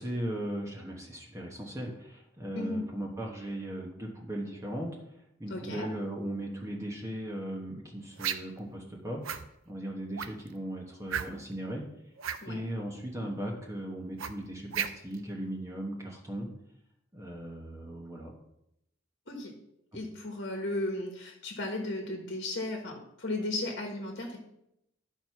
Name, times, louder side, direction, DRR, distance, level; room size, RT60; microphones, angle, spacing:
voice 1, 0.0-9.4 9.7-11.9 12.4-16.5 17.1-18.3, right 1 dB, 15° right, -1 dB, 1.1 m, -38 dB
voice 2, 2.5-2.8 5.5-5.9 12.4-12.6 19.3-19.6 19.9-24.4, left 2 dB, 50° left, 2 dB, 1.3 m, -35 dB
sound 1, 8.2-8.6 9.2-9.5 10.2-10.5 11.1-11.5 12.2-12.4 14.2-15.2, right 8 dB, 80° right, 0.6 m, -33 dB
11.5 x 4.5 x 5.7 m, 0.80 s
head